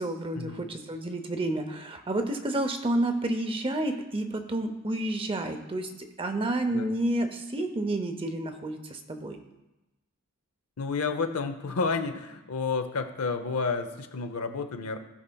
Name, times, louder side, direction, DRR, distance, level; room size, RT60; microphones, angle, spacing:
voice 1, 0.0-9.4, right 1 dB, 25° right, 7 dB, 0.6 m, -30 dB
voice 2, 10.8-15.0, left 4 dB, 80° left, 8 dB, 0.7 m, -30 dB
16.0 x 5.5 x 2.3 m, 1.0 s
head